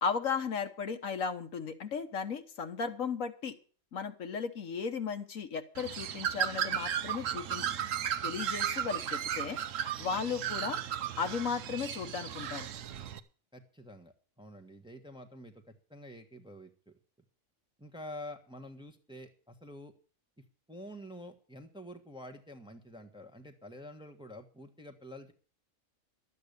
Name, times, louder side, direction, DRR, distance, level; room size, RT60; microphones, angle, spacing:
voice 1, 0.0-3.5 3.9-7.6 8.2-9.6 10.0-10.8 11.2-12.7, left 6 dB, 75° left, 7 dB, 1.6 m, -35 dB
Bird, 5.7-13.2, right 9 dB, 70° right, 1.2 m, -35 dB
voice 2, 13.5-16.9 17.8-19.9 20.7-25.3, left 1 dB, 5° right, 4 dB, 1.2 m, -48 dB
12.0 x 8.5 x 6.7 m, 0.39 s
omnidirectional pair, 1.4 m